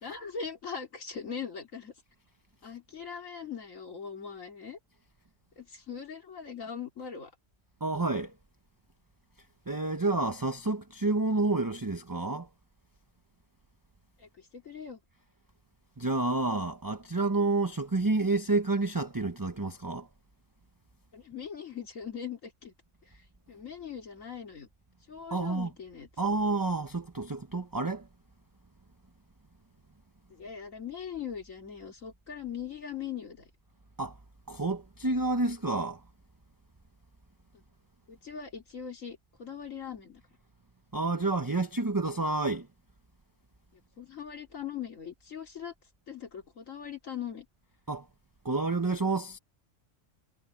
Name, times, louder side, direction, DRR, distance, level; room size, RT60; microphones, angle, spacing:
voice 1, 0.0-1.9 2.6-4.8 5.6-7.3 14.2-15.0 21.1-22.7 23.5-24.7 25.1-26.1 30.3-33.5 38.1-40.2 44.0-45.7 46.1-47.5, left 7 dB, 90° left, 3.0 m, -40 dB
voice 2, 7.8-8.3 9.7-12.5 16.0-20.1 25.3-25.7 26.2-28.1 34.0-34.1 34.5-36.0 40.9-42.7 47.9-48.1 48.4-49.4, right 3 dB, 20° right, 0.9 m, -29 dB
omnidirectional pair, 1.3 m